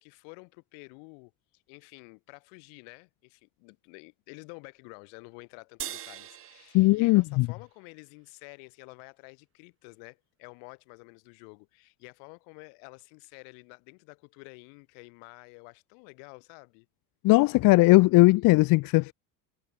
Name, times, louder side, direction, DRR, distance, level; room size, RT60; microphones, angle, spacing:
voice 1, 0.0-16.9, left 40 dB or more, 80° left, 3.8 m, -50 dB
sound 1, 5.8-8.4, right 11 dB, 30° right, 0.6 m, -43 dB
voice 2, 6.7-7.5 17.2-19.1, left 21 dB, 50° left, 0.5 m, -19 dB
supercardioid pair, 90°, 44 cm